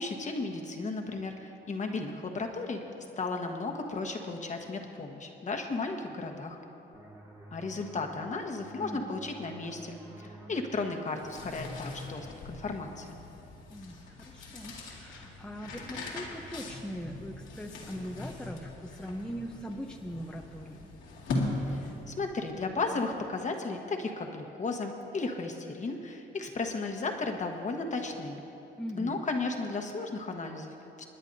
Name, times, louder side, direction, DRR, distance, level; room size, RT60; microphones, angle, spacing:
voice 1, 0.0-2.8 3.2-6.6 7.5-13.2 21.6-28.4 29.0-31.1, left 3 dB, 40° left, 3 dB, 1.3 m, -35 dB
sound 1, 6.9-12.3, right 2 dB, 15° right, 1.4 m, -51 dB
voice 2, 8.8-9.2 13.7-20.9 28.8-29.2, equal, 5° left, 1 dB, 0.7 m, -41 dB
sound 2, 11.0-22.2, left 2 dB, 85° left, 2.4 m, -40 dB
28.5 x 9.9 x 2.7 m, 3.0 s
cardioid pair, 90°, 20 cm